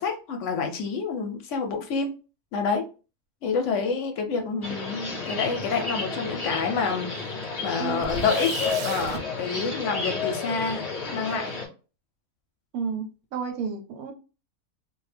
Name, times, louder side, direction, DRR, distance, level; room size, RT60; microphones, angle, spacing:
voice 1, 0.0-2.1 2.5-2.8 3.4-8.5 8.8-11.6, left 5 dB, 70° left, 5 dB, 0.8 m, -28 dB
sound 1, 4.6-11.7, left 4 dB, 45° left, 0.5 m, -31 dB
voice 2, 7.8-8.1 12.7-14.1, right 6 dB, 90° right, 6 dB, 1.1 m, -32 dB
sound 2, 8.0-9.2, right 4 dB, 70° right, 0.9 m, -34 dB
2.4 x 2.2 x 3.2 m, 0.34 s
omnidirectional pair, 1.5 m